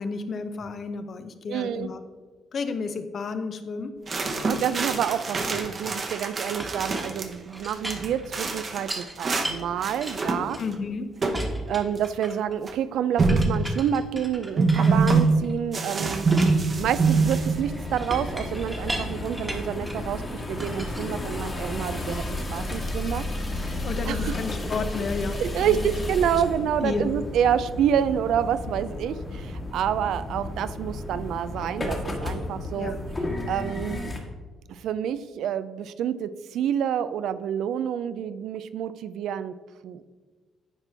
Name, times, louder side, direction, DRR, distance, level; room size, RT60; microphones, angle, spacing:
voice 1, 0.0-2.0 2.5-4.0 10.6-11.1 14.8-15.1 23.8-25.8 26.8-27.1 32.7-33.1, left 4 dB, 50° left, 9 dB, 0.6 m, -32 dB
voice 2, 1.5-1.9 4.4-10.6 11.7-16.3 16.8-20.2 20.5-23.2 23.6-23.7 24.1-24.3 25.4-32.9 33.5-34.0 34.7-39.5 39.8-40.0, right 9 dB, 80° right, 13 dB, 0.3 m, -28 dB
sound 1, 4.1-7.3 7.6-9.5 9.8-10.7 11.2-11.5 11.7-11.8 12.7-12.8 13.2-13.6 14.6-15.3 15.7-17.6, right 4 dB, 40° right, 0.8 m, -24 dB
Chink clink, 6.6-9.1 9.4-10.9 11.3-12.6 13.3-15.6 16.1-20.1 20.6-21.7, right 1 dB, 10° right, 1.2 m, -37 dB
sound 2, 16.7-34.2, left 2 dB, 30° left, 1.4 m, -33 dB
9.7 x 4.5 x 3.4 m, 1.3 s
cardioid pair, 90°, 0 cm